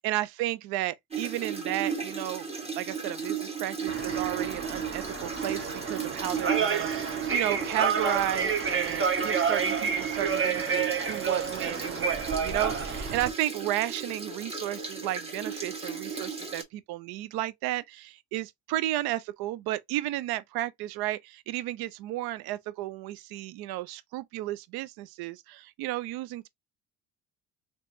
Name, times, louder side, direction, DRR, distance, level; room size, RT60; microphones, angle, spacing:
voice 1, 0.0-2.5 2.7-6.9 7.3-26.5, right 15 dB, 65° right, 0.5 m, -33 dB
sound 1, 1.1-16.6, right 6 dB, 15° right, 1.4 m, -35 dB
sound 2, 3.9-13.3, right 5 dB, 30° right, 0.9 m, -30 dB
3.3 x 3.0 x 2.6 m
supercardioid pair, 80°, 40 cm